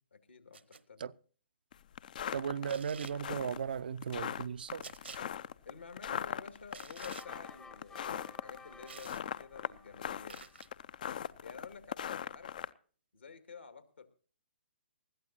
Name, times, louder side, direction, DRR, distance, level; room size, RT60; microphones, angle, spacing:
voice 1, 0.1-1.0 5.6-10.6 11.4-12.5 13.1-14.1, left 5 dB, 70° left, 2.0 m, -51 dB
sound 1, 0.5-0.8 2.7-3.2 4.8-5.2 6.7-7.3 8.9-9.2 10.3-10.7, right 5 dB, 70° right, 1.0 m, -49 dB
sound 2, 1.7-12.7, left 9 dB, 45° left, 0.5 m, -40 dB
voice 2, 2.3-4.9, right 7 dB, 55° right, 0.5 m, -36 dB
sound 3, 7.2-10.6, left 4 dB, 10° left, 0.8 m, -55 dB
20.5 x 14.5 x 2.7 m
figure-of-eight pair, 125°, 6 cm